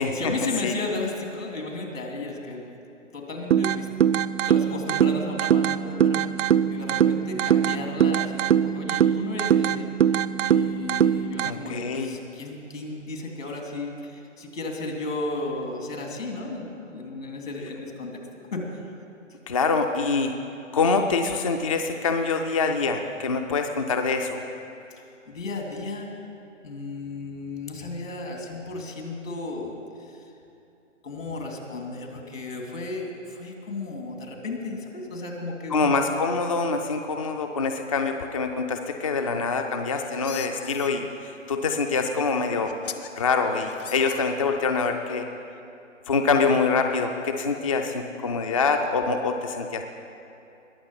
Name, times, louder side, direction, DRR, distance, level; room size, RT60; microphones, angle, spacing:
voice 1, 0.0-2.7 3.1-3.9 4.4-18.2 18.5-18.6 24.9-26.1 26.6-29.7 30.0-30.2 31.0-35.9, left 2 dB, 75° left, 1 dB, 2.9 m, -34 dB
sound 1, 3.5-11.5, right 9 dB, 70° right, 0.6 m, -22 dB
voice 2, 11.4-12.1 19.5-20.3 20.7-24.4 35.7-42.8 43.2-45.3 46.1-49.8, left 4 dB, 30° left, 5 dB, 0.4 m, -25 dB
sound 2, 39.6-40.9 42.1-42.2 42.7-43.1 43.6-44.7, left 9 dB, 45° left, 0.8 m, -40 dB
20.5 x 7.1 x 5.6 m, 2.7 s
figure-of-eight pair, 145°, 38 cm